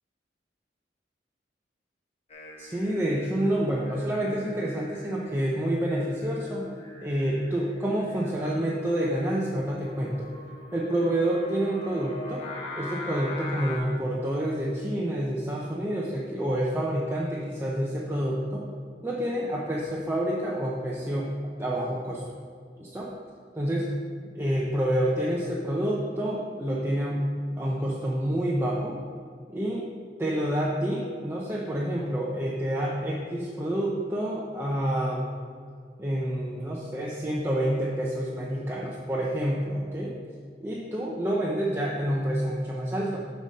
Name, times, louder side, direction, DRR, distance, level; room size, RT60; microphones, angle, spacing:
Singing, 2.3-13.8, left 1 dB, 35° left, 1.0 m, -43 dB
voice 1, 2.6-6.7 7.0-10.3 10.7-12.4 12.7-18.6 19.0-21.3 21.6-22.2 22.8-23.1 23.5-23.9 24.3-27.2 27.6-29.0 29.5-29.9 30.2-35.2 36.0-40.1 40.6-43.2, right 1 dB, 15° right, -4 dB, 0.6 m, -28 dB
6.9 x 4.2 x 6.3 m, 2.1 s
head